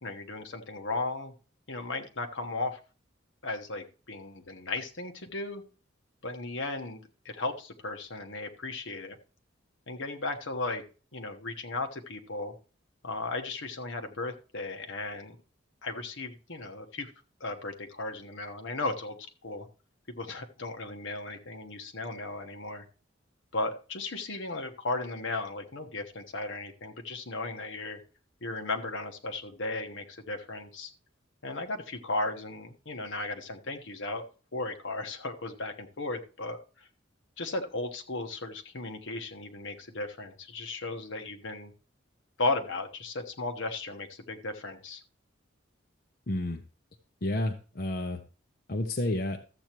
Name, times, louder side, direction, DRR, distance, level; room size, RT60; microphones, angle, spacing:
voice 1, 0.0-1.3 1.7-2.8 3.4-5.6 6.2-7.0 7.3-9.2 9.9-10.8 11.1-12.5 13.0-15.4 15.8-17.1 17.4-19.2 19.4-19.7 20.2-22.8 23.5-28.0 28.4-30.9 31.4-34.2 34.5-36.9 37.4-41.7 42.4-45.0, left 2 dB, 75° left, 5 dB, 1.2 m, -35 dB
voice 2, 46.3-46.6 47.2-48.2 48.7-49.4, left 1 dB, 50° left, 5 dB, 0.7 m, -30 dB
13.5 x 7.9 x 3.0 m, 0.36 s
head